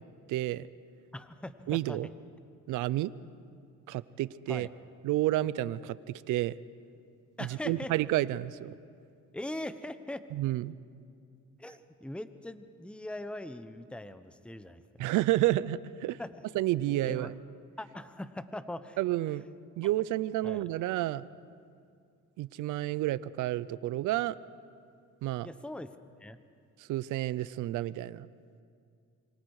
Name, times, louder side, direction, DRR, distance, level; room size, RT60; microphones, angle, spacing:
voice 1, 0.3-0.7 1.7-2.1 2.7-3.1 3.9-4.7 5.0-6.0 6.3-6.5 7.4-8.7 10.3-10.8 15.0-16.2 16.5-17.3 19.0-19.4 19.8-21.3 22.4-24.3 25.2-25.5 26.9-28.3, right 15 dB, 85° right, 18 dB, 0.6 m, -30 dB
voice 2, 1.1-2.0 4.5-4.7 7.4-7.9 9.3-10.2 11.6-15.1 16.2-16.4 17.0-17.3 17.8-19.0 20.4-20.6 25.4-26.4, left 1 dB, 5° left, 11 dB, 0.9 m, -41 dB
26.0 x 23.0 x 4.8 m, 2.3 s
cardioid pair, 90°, 30 cm